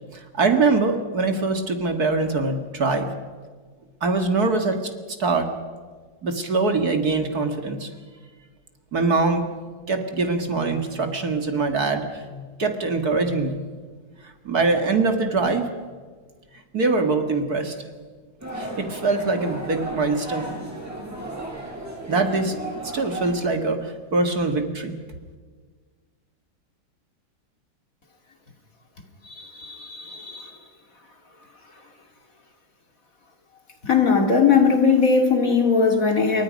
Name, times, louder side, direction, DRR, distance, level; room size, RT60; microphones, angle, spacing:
voice 1, 0.1-3.1 4.0-4.9 5.2-5.5 6.2-7.9 8.9-9.4 9.9-13.6 14.2-15.7 16.7-17.7 18.5-20.5 22.1-22.5 22.8-25.0, right 3 dB, 50° right, 6 dB, 2.2 m, -23 dB
sound 1, 18.4-23.4, right 1 dB, 5° right, 6.7 m, -34 dB
voice 2, 29.3-30.5 33.8-36.4, left 5 dB, 40° left, 4 dB, 2.7 m, -20 dB
28.5 x 23.5 x 5.3 m, 1.5 s
omnidirectional pair, 2.3 m